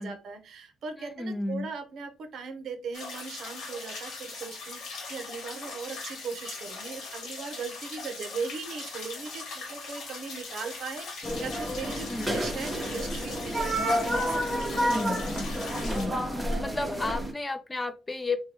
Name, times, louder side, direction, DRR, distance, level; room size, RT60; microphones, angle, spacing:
voice 1, 0.0-13.8 14.1-15.4 15.7-15.9, right 5 dB, 65° right, 0.6 m, -39 dB
voice 2, 0.9-1.7 12.1-12.5 14.6-15.5 15.8-18.4, left 2 dB, 20° left, 0.4 m, -33 dB
sound 1, 2.9-16.1, left 3 dB, 75° left, 1.1 m, -40 dB
sound 2, 11.2-17.3, equal, 10° right, 0.8 m, -30 dB
3.2 x 2.2 x 2.8 m
cardioid pair, 90°, 0 cm